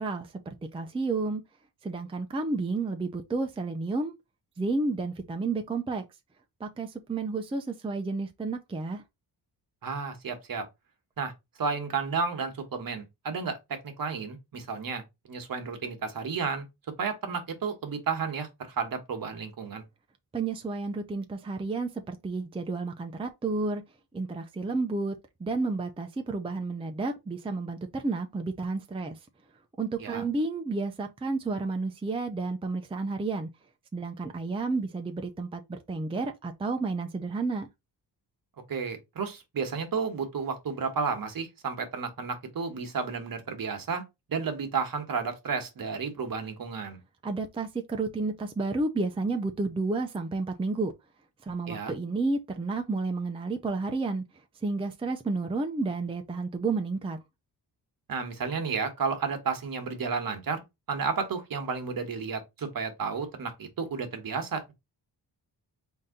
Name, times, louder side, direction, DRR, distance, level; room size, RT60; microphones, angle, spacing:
voice 1, 0.0-1.4 1.8-4.1 4.6-6.0 6.6-9.0 20.3-23.8 24.1-25.1 25.4-29.2 29.8-33.5 33.9-37.7 47.2-50.9 51.4-54.2 54.6-57.2, right 3 dB, 15° right, 0.5 m, -31 dB
voice 2, 9.8-10.6 11.2-11.3 11.6-16.7 17.0-19.8 30.0-30.2 38.7-44.0 44.3-47.0 51.7-51.9 58.1-60.6 60.9-64.7, right 5 dB, 55° right, 1.3 m, -32 dB
3.9 x 2.7 x 3.7 m
cardioid pair, 95°, 42 cm